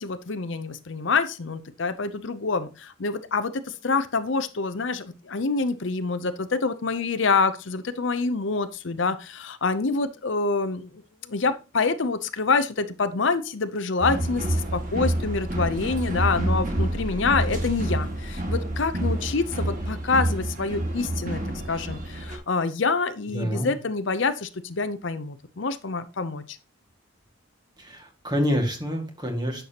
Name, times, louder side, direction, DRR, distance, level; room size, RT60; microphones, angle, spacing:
voice 1, 0.0-10.9 11.2-21.4 21.7-26.6, left 4 dB, 60° left, 12 dB, 0.7 m, -26 dB
sound 1, 14.0-22.4, right 1 dB, 40° right, 2.1 m, -28 dB
voice 2, 23.3-23.7 27.8-29.6, equal, 20° right, 3 dB, 2.0 m, -27 dB
10.5 x 6.8 x 2.9 m, 0.31 s
head